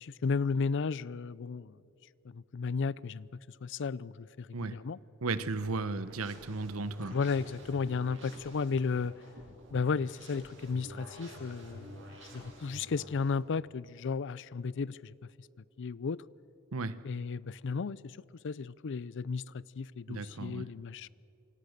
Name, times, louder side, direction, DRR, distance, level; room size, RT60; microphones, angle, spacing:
voice 1, 0.0-1.7 2.3-3.3 3.6-5.0 7.1-9.1 9.7-12.1 12.3-15.1 15.8-16.2 17.0-18.2 18.4-21.1, left 5 dB, 60° left, 0.5 m, -34 dB
voice 2, 5.2-7.2 16.7-17.0 20.1-20.6, right 3 dB, 80° right, 1.0 m, -35 dB
sound 1, 5.3-13.3, equal, 65° right, 7.3 m, -50 dB
27.5 x 25.5 x 6.7 m
head